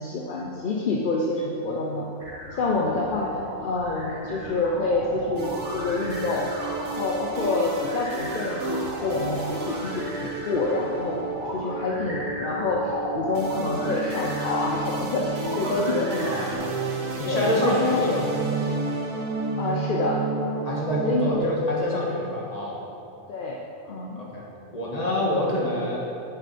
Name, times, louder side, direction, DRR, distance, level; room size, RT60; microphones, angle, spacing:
voice 1, 0.0-2.1 2.5-6.5 6.8-11.2 11.5-16.7 17.2-18.2 19.6-20.2 21.0-21.5 23.3-24.2, left 2 dB, 50° left, -2 dB, 0.7 m, -27 dB
sound 1, 2.2-16.6, left 1 dB, 55° right, 2.5 m, -36 dB
sound 2, 5.4-21.4, right 3 dB, 80° right, 1.3 m, -31 dB
voice 2, 16.2-16.6 17.2-18.3 20.6-22.8 24.1-24.5 24.7-26.0, left 1 dB, 30° left, -4 dB, 1.6 m, -26 dB
9.1 x 7.2 x 4.2 m, 2.7 s
omnidirectional pair, 1.4 m